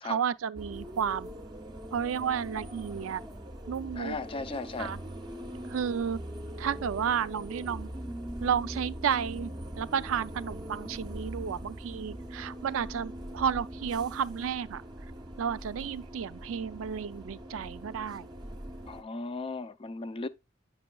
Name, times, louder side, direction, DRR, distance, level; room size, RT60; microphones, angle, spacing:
voice 1, 0.0-1.3 1.9-3.2 3.7-4.2 4.8-5.0 5.7-6.2 6.6-7.9 8.4-14.8 15.4-18.3, right 7 dB, 85° right, 0.4 m, -32 dB
sound 1, 0.5-19.0, right 1 dB, 20° right, 0.6 m, -42 dB
voice 2, 3.9-5.0 18.9-20.3, left 3 dB, 25° left, 0.3 m, -36 dB
8.6 x 6.0 x 2.3 m
head